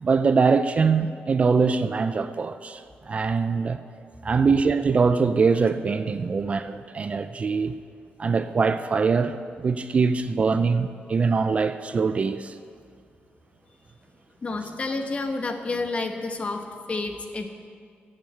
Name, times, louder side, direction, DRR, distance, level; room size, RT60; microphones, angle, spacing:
voice 1, 0.0-2.8 3.1-3.8 4.2-7.7 8.2-12.5, right 5 dB, 35° right, 0.4 m, -23 dB
voice 2, 14.4-17.5, left 3 dB, 30° left, 1.1 m, -30 dB
11.5 x 7.3 x 9.4 m
wide cardioid pair, 165°, 4 cm